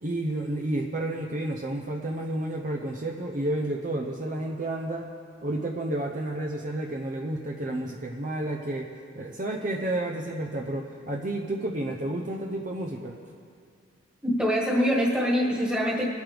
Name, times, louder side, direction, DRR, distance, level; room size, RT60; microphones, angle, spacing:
voice 1, 0.0-5.1 5.4-13.2, right 1 dB, 40° right, 1 dB, 0.7 m, -31 dB
voice 2, 14.2-16.0, equal, 5° right, -3 dB, 1.7 m, -24 dB
21.5 x 9.4 x 3.4 m, 2.4 s
head